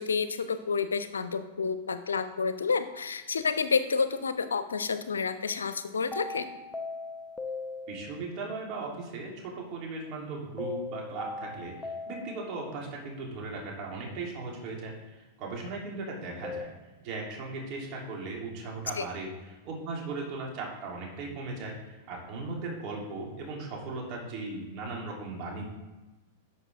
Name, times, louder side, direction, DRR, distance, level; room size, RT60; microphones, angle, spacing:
voice 1, 0.0-6.6 19.0-19.1, left 5 dB, 75° left, 11 dB, 0.6 m, -30 dB
sound 1, 6.1-8.4 10.6-12.9 16.4-16.7, left 3 dB, 10° left, 0.8 m, -39 dB
voice 2, 7.9-16.7 17.0-25.6, right 3 dB, 40° right, -1 dB, 2.9 m, -38 dB
11.5 x 6.4 x 3.5 m, 1.1 s
figure-of-eight pair, 95°, 0 cm